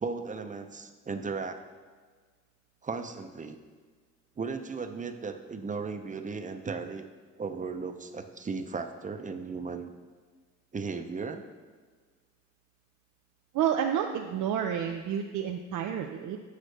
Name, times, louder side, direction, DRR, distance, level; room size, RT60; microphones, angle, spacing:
voice 1, 0.0-1.6 2.8-3.6 4.4-7.1 7.4-9.9 10.7-11.5, right 4 dB, 25° right, 7 dB, 0.6 m, -36 dB
voice 2, 13.5-16.4, right 9 dB, 80° right, 3 dB, 0.5 m, -30 dB
8.1 x 7.3 x 3.3 m, 1.5 s
cardioid pair, 90°, 30 cm